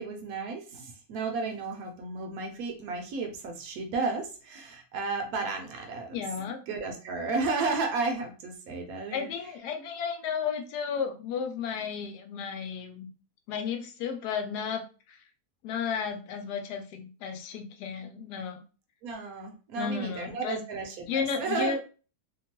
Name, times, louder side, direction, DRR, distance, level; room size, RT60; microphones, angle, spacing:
voice 1, 0.0-6.2 6.7-9.3 19.0-21.7, right 4 dB, 70° right, 3 dB, 1.0 m, -33 dB
voice 2, 6.1-6.6 9.1-13.1 13.5-14.8 15.1-15.2 15.6-18.6 19.8-20.6 21.1-21.8, left 6 dB, 80° left, 5 dB, 1.1 m, -33 dB
2.8 x 2.2 x 2.8 m, 0.35 s
omnidirectional pair, 1.7 m